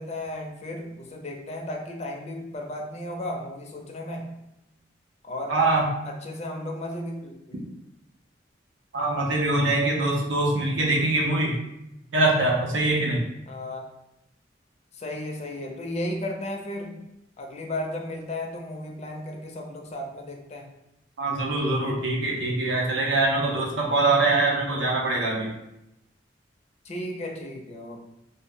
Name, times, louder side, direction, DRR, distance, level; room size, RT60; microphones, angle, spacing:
voice 1, 0.0-4.4 5.2-5.5 6.0-7.7 13.5-13.9 14.9-17.0 17.4-20.7 26.8-28.1, left 1 dB, 35° left, 1 dB, 0.4 m, -34 dB
voice 2, 5.5-5.9 8.9-11.6 12.1-13.2 21.2-25.5, right 2 dB, 85° right, -1 dB, 0.6 m, -23 dB
2.1 x 2.0 x 3.5 m, 0.88 s
head